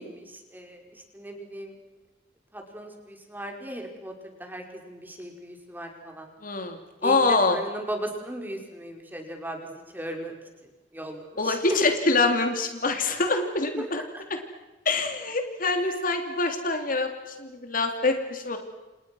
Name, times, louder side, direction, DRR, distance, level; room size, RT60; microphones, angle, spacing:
voice 1, 0.0-1.7 2.5-6.3 7.0-10.3 10.6-11.8 13.8-14.2 15.9-16.0, right 1 dB, 10° right, 3 dB, 5.2 m, -37 dB
voice 2, 6.4-7.6 11.4-14.0 14.8-18.6, left 3 dB, 50° left, 5 dB, 2.9 m, -25 dB
30.0 x 28.0 x 6.2 m, 1.1 s
head